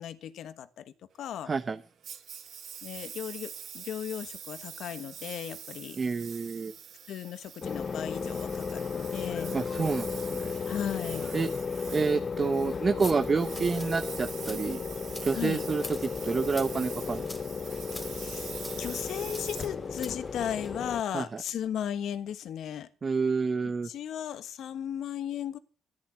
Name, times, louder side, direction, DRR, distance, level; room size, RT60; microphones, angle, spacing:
voice 1, 0.0-1.5 2.8-6.3 7.1-9.6 10.6-11.3 15.3-15.6 18.1-18.5 18.8-22.9 23.8-25.6, left 9 dB, 75° left, 1.4 m, -36 dB
voice 2, 1.5-1.8 6.0-6.7 9.5-10.5 11.3-11.5 11.9-14.8 15.2-17.4 21.1-21.4 23.0-23.9, right 4 dB, 35° right, 1.0 m, -29 dB
Engine, 2.0-20.5, right 8 dB, 65° right, 2.7 m, -45 dB
sound 1, 7.6-21.0, left 5 dB, 40° left, 0.7 m, -35 dB
sound 2, 12.8-20.8, left 1 dB, 15° left, 3.0 m, -47 dB
13.5 x 10.0 x 8.3 m
cardioid pair, 90°, 0 cm